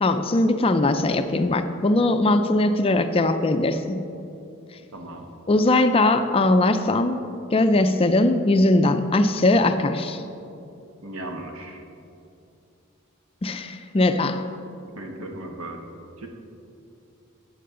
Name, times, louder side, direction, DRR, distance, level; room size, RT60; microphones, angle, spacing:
voice 1, 0.0-4.0 5.5-7.2 7.5-10.2 13.4-14.4, left 2 dB, 25° left, 9 dB, 0.4 m, -20 dB
voice 2, 4.9-5.3 11.0-11.8 15.0-15.8 16.2-16.3, right 1 dB, 75° right, 3 dB, 1.3 m, -36 dB
13.5 x 8.7 x 3.8 m, 2.7 s
head